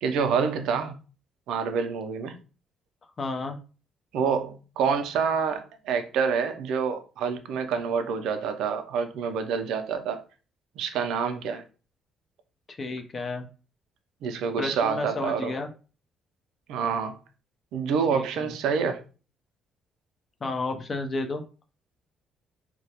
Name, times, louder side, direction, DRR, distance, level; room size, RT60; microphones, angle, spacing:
voice 1, 0.0-1.0 1.5-2.4 4.1-10.2 10.8-11.6 14.2-15.5 16.7-17.2 17.7-19.0, right 6 dB, 85° right, 0.3 m, -27 dB
voice 2, 3.2-3.6 12.8-13.5 14.6-15.7 18.1-18.5 20.4-21.4, left 3 dB, 35° left, 0.4 m, -31 dB
2.2 x 2.0 x 2.8 m
cardioid pair, 105°, 0 cm